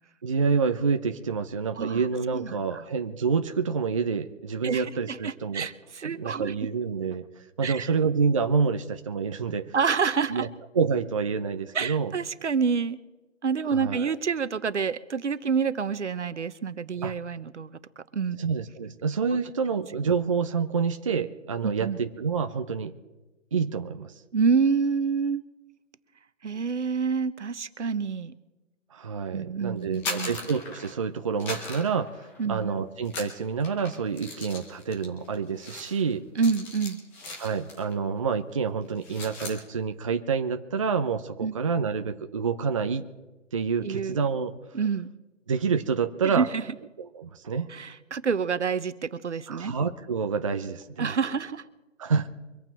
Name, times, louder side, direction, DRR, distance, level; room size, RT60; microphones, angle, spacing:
voice 1, 0.2-5.7 6.0-9.7 10.3-10.5 10.7-12.1 13.7-14.2 17.0-17.1 18.4-22.9 23.5-24.1 28.9-36.2 37.4-43.0 43.5-44.8 45.5-46.5 47.0-47.7 49.5-51.1 52.0-52.3, right 5 dB, 25° right, 6 dB, 0.6 m, -28 dB
voice 2, 2.3-2.8 4.6-6.5 7.6-7.9 9.7-10.5 11.7-13.0 13.4-17.8 18.1-18.4 21.6-22.0 24.3-25.4 26.4-28.3 29.3-30.3 32.4-32.7 36.4-37.0 41.4-41.5 43.8-44.2 44.7-45.1 46.2-46.6 47.7-49.7 51.0-51.7, right 5 dB, 65° right, 14 dB, 1.1 m, -28 dB
sound 1, 29.8-31.1 31.4-32.6 33.0-38.0 38.2-38.5 38.8-39.6, left 2 dB, 5° left, 0.8 m, -39 dB
25.0 x 8.9 x 4.6 m, 1.1 s
figure-of-eight pair, 155°, 37 cm